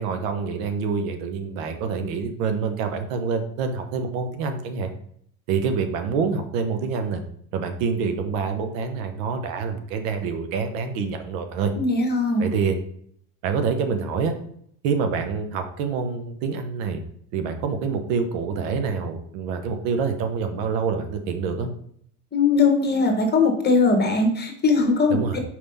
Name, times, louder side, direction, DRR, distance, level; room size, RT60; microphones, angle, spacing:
voice 1, 0.0-4.9 5.5-7.2 7.5-11.7 12.4-12.8 13.4-14.3 14.8-17.0 17.3-21.7 25.1-25.4, right 5 dB, 75° right, 7 dB, 1.0 m, -26 dB
voice 2, 11.7-12.5 22.3-25.2, left 4 dB, 25° left, 4 dB, 1.4 m, -20 dB
4.8 x 3.5 x 5.5 m, 0.66 s
supercardioid pair, 105°, 41 cm